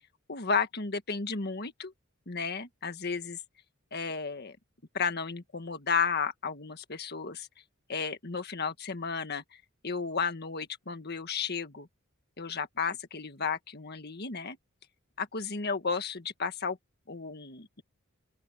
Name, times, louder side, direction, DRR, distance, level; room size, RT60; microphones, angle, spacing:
voice 1, 0.3-1.9 2.3-3.4 3.9-4.6 4.9-7.5 7.9-9.4 9.8-11.9 12.4-14.6 15.2-16.8 17.1-17.8, left 5 dB, 50° left, 1.6 m, -33 dB
open air
head